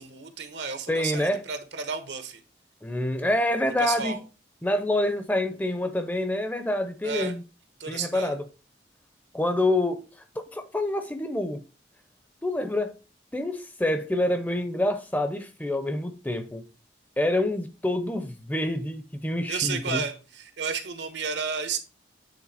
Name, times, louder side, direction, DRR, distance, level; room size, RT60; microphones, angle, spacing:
voice 1, 0.0-2.4 3.8-4.2 7.0-7.3 7.8-8.3 19.5-21.8, right 5 dB, 80° right, 1.1 m, -32 dB
voice 2, 0.9-1.4 2.8-4.2 4.6-7.4 7.9-8.4 9.3-10.0 10.4-11.6 12.4-12.9 13.3-16.6 17.2-20.0, left 1 dB, 10° left, 0.6 m, -27 dB
8.6 x 3.7 x 4.1 m
head